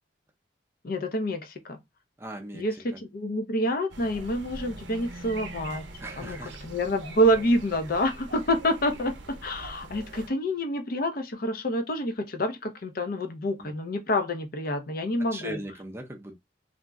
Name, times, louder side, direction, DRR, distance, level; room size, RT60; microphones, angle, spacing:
voice 1, 0.8-1.8 2.5-5.9 6.2-15.6, equal, 55° left, 0.6 m, -28 dB
voice 2, 2.2-2.7 2.9-3.0 6.0-6.6 13.6-13.7 15.3-16.3, equal, 15° right, 0.6 m, -39 dB
sound 1, 3.9-10.3, right 2 dB, 90° right, 0.6 m, -43 dB
2.5 x 2.1 x 3.5 m
head